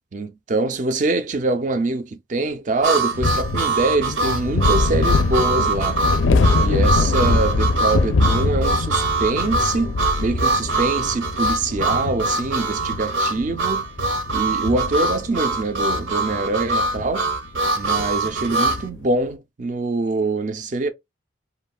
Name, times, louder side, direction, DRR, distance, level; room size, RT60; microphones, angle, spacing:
voice 1, 0.1-6.0 6.6-13.8 14.3-17.3 17.8-20.9, right 2 dB, 40° right, 0.4 m, -24 dB
Harmonica, 2.8-18.8, right 3 dB, 80° right, 0.7 m, -23 dB
sound 1, 3.1-19.0, left 3 dB, 70° left, 0.4 m, -24 dB
3.0 x 2.2 x 2.3 m
head